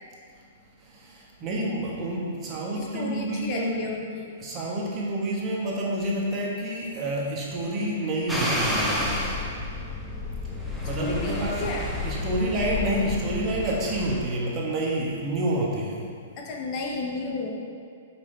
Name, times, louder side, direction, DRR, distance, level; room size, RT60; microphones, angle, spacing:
voice 1, 0.9-3.8 4.4-9.2 10.8-11.6 12.0-16.1, right 1 dB, 25° right, -5 dB, 1.3 m, -28 dB
voice 2, 2.7-4.3 10.8-11.9 16.4-17.5, left 3 dB, 40° left, -1 dB, 0.9 m, -32 dB
sound 1, 8.3-14.2, left 1 dB, ahead, 0.9 m, -30 dB
5.1 x 4.8 x 4.4 m, 2.2 s
hypercardioid pair, 130°, 0 cm